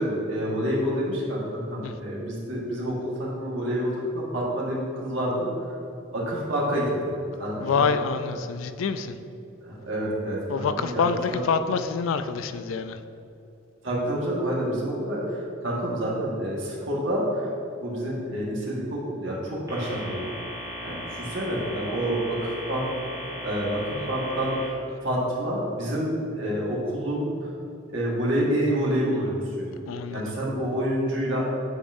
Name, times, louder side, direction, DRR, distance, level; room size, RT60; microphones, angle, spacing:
voice 1, 0.0-5.5 6.1-7.1 7.4-7.9 9.6-11.4 13.8-17.5 17.8-20.2 20.8-22.9 23.4-24.5 25.0-27.5 27.9-29.8 30.1-31.5, equal, 70° right, -5 dB, 1.5 m, -28 dB
voice 2, 7.6-9.2 10.5-13.0 29.9-30.3, left 5 dB, 85° left, 10 dB, 0.4 m, -26 dB
sound 1, 19.7-24.7, equal, 15° right, 1.3 m, -37 dB
8.3 x 5.3 x 2.6 m, 2.8 s
head